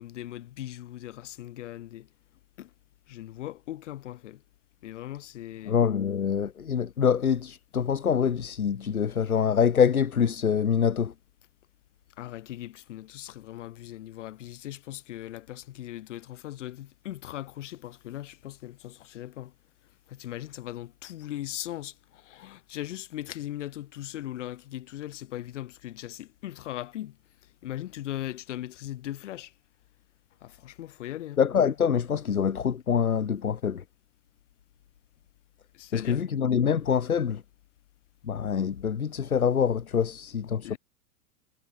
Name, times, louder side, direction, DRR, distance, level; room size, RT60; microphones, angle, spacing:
voice 1, 0.0-2.1 2.6-2.7 3.1-4.4 4.8-5.8 12.2-19.5 20.1-27.2 27.6-29.5 30.4-31.4 35.7-36.2 40.6-40.8, left 13 dB, 55° left, 6.2 m, -39 dB
voice 2, 5.7-11.1 31.4-33.8 35.9-37.4 38.2-40.7, left 7 dB, 75° left, 1.2 m, -25 dB
figure-of-eight pair, 100°, 43 cm